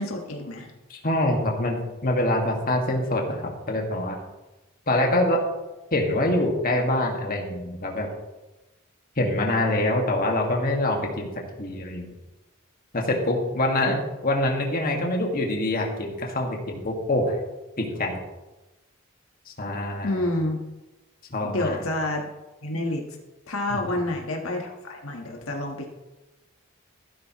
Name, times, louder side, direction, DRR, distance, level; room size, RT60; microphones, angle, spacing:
voice 1, 0.0-0.7 13.9-14.0 20.0-20.6 21.4-22.2 22.6-23.0 23.5-25.9, left 1 dB, 80° left, 1 dB, 1.5 m, -28 dB
voice 2, 0.9-4.2 4.9-5.4 5.9-8.1 9.2-11.3 11.6-12.1 12.9-17.4 17.8-18.2 19.6-20.3 21.3-21.8 23.7-23.8, left 1 dB, 45° left, 1 dB, 2.0 m, -25 dB
14.5 x 12.0 x 3.1 m, 1.1 s
head